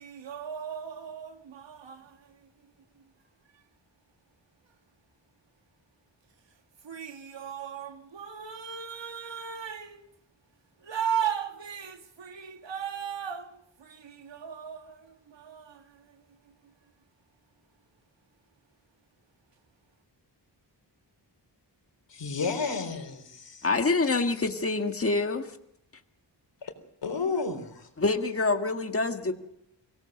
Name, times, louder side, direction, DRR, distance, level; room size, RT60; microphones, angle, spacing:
voice 1, 0.0-2.2 6.8-10.1 10.8-15.8, right 8 dB, 80° right, 7 dB, 1.8 m, -36 dB
voice 2, 22.1-23.7 26.6-26.7 27.0-27.9, left 4 dB, 75° left, 7 dB, 3.8 m, -32 dB
voice 3, 23.6-25.5 28.0-29.3, left 3 dB, 30° left, 6 dB, 1.7 m, -26 dB
24.5 x 18.0 x 6.5 m, 0.79 s
wide cardioid pair, 115°, 43 cm